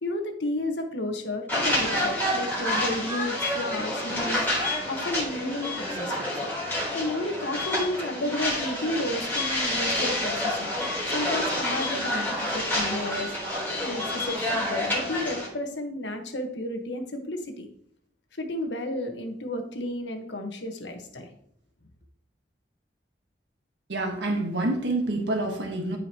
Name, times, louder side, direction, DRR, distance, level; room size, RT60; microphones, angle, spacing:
voice 1, 0.0-4.5 4.9-6.3 6.9-10.7 11.1-17.7 18.4-21.3, left 1 dB, 80° left, 5 dB, 1.3 m, -32 dB
sound 1, 1.5-15.5, left 1 dB, 10° left, 3.7 m, -28 dB
voice 2, 23.9-26.0, right 2 dB, 80° right, 2 dB, 1.4 m, -27 dB
13.5 x 5.1 x 3.0 m, 0.67 s
head